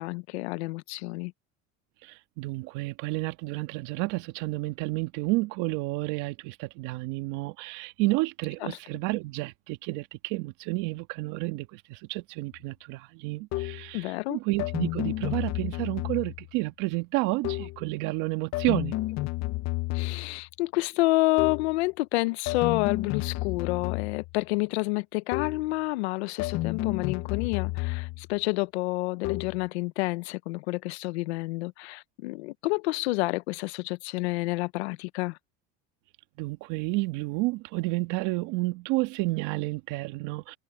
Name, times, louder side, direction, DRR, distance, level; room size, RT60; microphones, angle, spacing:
voice 1, 0.0-1.3 8.6-8.8 13.9-14.4 19.9-35.4, left 22 dB, 85° left, 0.9 m, -29 dB
voice 2, 2.0-19.0 36.4-40.6, right 22 dB, 70° right, 1.7 m, -30 dB
sound 1, 13.5-13.9 14.6-16.5 17.4-17.9 18.5-20.4 21.4-21.8 22.5-24.4 25.3-25.7 26.4-28.3 29.2-29.7, left 18 dB, 55° left, 1.0 m, -31 dB
supercardioid pair, 100°, 32 cm